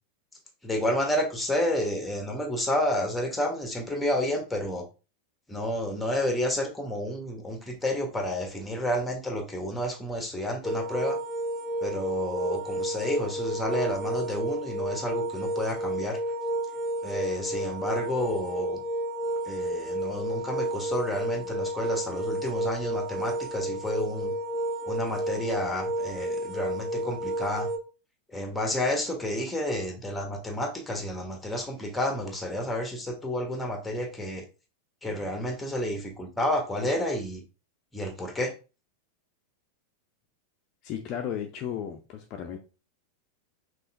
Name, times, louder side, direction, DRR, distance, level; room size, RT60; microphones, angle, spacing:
voice 1, 0.6-4.8 5.5-11.2 11.8-16.2 17.0-18.8 19.4-24.3 24.8-27.7 28.3-34.4 35.0-37.4 37.9-38.5, left 1 dB, 5° left, 3 dB, 1.2 m, -30 dB
sound 1, 10.6-27.8, right 1 dB, 10° right, 0.7 m, -31 dB
voice 2, 40.8-42.6, left 9 dB, 40° left, 4 dB, 0.6 m, -34 dB
5.5 x 3.1 x 2.6 m, 0.32 s
figure-of-eight pair, 90°, 0 cm